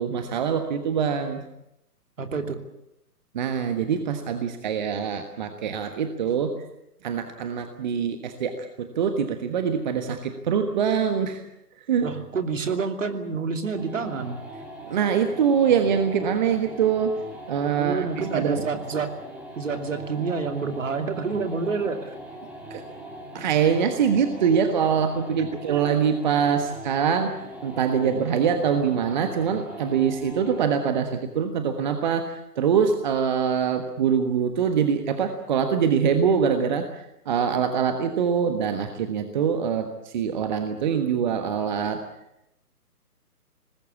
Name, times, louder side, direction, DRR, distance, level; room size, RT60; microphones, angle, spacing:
voice 1, 0.0-1.4 3.3-6.6 7.0-11.4 11.9-12.1 14.9-17.2 17.5-18.6 22.7-22.8 23.3-42.0, right 7 dB, 30° right, 7 dB, 1.4 m, -24 dB
voice 2, 2.2-2.6 12.0-14.4 17.8-19.2 19.6-22.1 25.7-25.8, right 5 dB, 55° right, 7 dB, 3.0 m, -28 dB
sound 1, 13.8-30.8, right 1 dB, 5° right, 2.8 m, -41 dB
25.0 x 20.0 x 8.5 m, 0.84 s
figure-of-eight pair, 135°, 47 cm